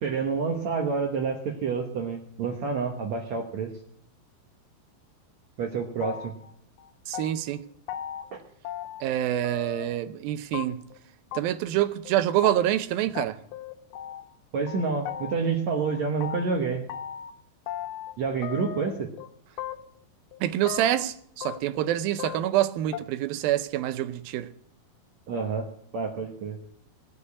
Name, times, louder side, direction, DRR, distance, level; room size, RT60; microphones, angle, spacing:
voice 1, 0.0-3.7 5.6-6.3 8.3-8.4 14.5-16.8 18.2-19.1 25.3-25.7 25.9-26.6, right 5 dB, 60° right, 2.1 m, -28 dB
sound 1, 6.0-6.5 6.8-7.6 7.9-8.3 8.6-9.2 9.4-10.0 10.5-11.0 11.3-11.4 11.7-11.8 12.1-12.2 12.4-12.5 12.8-12.9 13.2-14.4 14.7-15.6 15.8-17.3 17.7-18.2 18.4-19.3 19.6-20.0 20.3-21.0 21.4-21.9 22.2-22.6 22.9-23.0, left 11 dB, 85° left, 2.7 m, -37 dB
voice 2, 7.1-7.6 9.0-10.8 11.3-13.4 20.4-24.5, right 12 dB, 80° right, 2.5 m, -26 dB
18.5 x 6.7 x 8.4 m
omnidirectional pair, 4.3 m